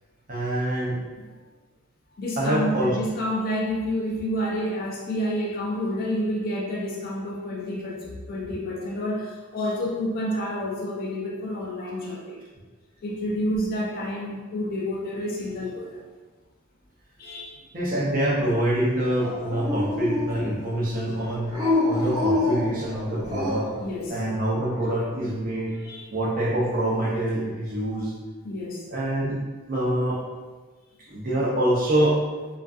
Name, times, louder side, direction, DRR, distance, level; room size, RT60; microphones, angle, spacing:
voice 1, 0.3-1.0 2.4-3.0 11.8-12.2 13.2-13.3 17.7-21.6 21.8-23.7 24.1-25.8 26.1-28.1 28.9-29.4 29.7-30.2 31.0-32.2, right 1 dB, 40° right, -4 dB, 0.5 m, -25 dB
voice 2, 2.2-12.4 13.0-16.0 17.2-17.6 23.8-24.2 25.8-26.1 28.4-28.9, equal, 40° left, -3 dB, 0.3 m, -29 dB
Dog, 19.1-20.6 21.5-23.8, left 2 dB, 20° right, 1.2 m, -26 dB
2.5 x 2.4 x 2.3 m, 1.3 s
head